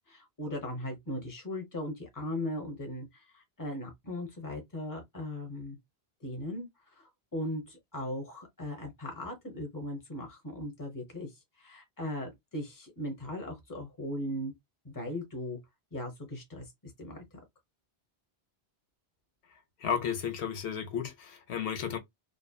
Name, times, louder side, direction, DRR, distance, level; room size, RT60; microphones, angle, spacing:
voice 1, 0.1-5.8 6.2-6.7 7.0-11.3 11.6-14.5 14.8-15.6 15.9-16.7 17.0-17.2, left 1 dB, 20° left, 0.8 m, -38 dB
voice 2, 19.8-22.0, left 8 dB, 90° left, 0.9 m, -33 dB
2.6 x 2.0 x 2.3 m
omnidirectional pair, 1.1 m